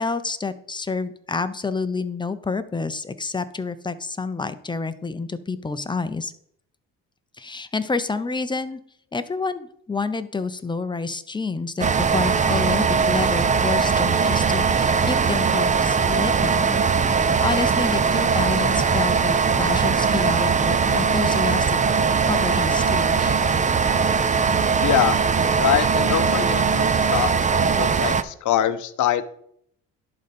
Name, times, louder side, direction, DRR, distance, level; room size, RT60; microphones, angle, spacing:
voice 1, 0.0-6.3 7.4-8.8 9.1-21.8 22.2-23.4, left 4 dB, 15° left, 11 dB, 0.7 m, -28 dB
sound 1, 11.8-28.2, right 5 dB, 20° right, 0.5 m, -20 dB
voice 2, 24.8-25.2 25.6-29.2, left 10 dB, 55° left, 10 dB, 0.7 m, -24 dB
11.0 x 4.0 x 5.3 m, 0.69 s
cardioid pair, 85°, 35 cm